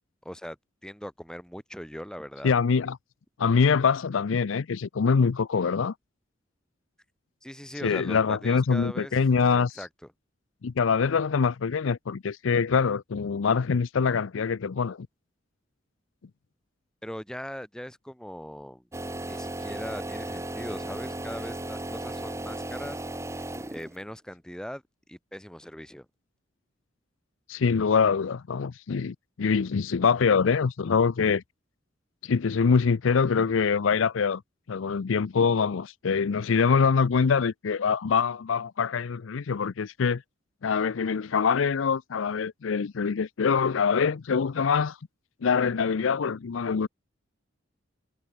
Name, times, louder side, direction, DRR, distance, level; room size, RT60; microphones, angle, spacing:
voice 1, 0.3-0.6 0.8-2.5 7.4-9.1 9.5-9.9 17.0-18.8 19.2-23.0 23.7-24.8 25.1-26.1, equal, 5° left, 5.3 m, -40 dB
voice 2, 2.4-3.0 3.4-5.9 7.8-9.7 10.6-15.1 27.5-31.4 32.2-34.4 34.7-40.2 40.6-45.0 45.4-46.9, left 5 dB, 80° left, 0.5 m, -24 dB
sound 1, 18.9-24.1, right 1 dB, 15° right, 1.3 m, -35 dB
head